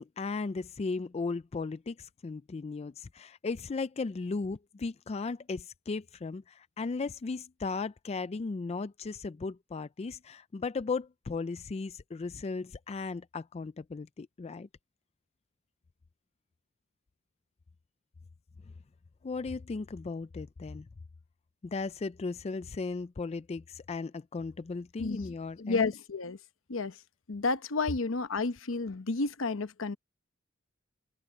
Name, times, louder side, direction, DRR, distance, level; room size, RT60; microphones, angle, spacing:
voice 1, 0.0-14.7 19.2-20.9 21.6-25.9, left 4 dB, 30° left, 0.4 m, -36 dB
voice 2, 25.6-26.4 26.7-27.0 27.3-30.0, left 3 dB, 75° left, 0.9 m, -31 dB
head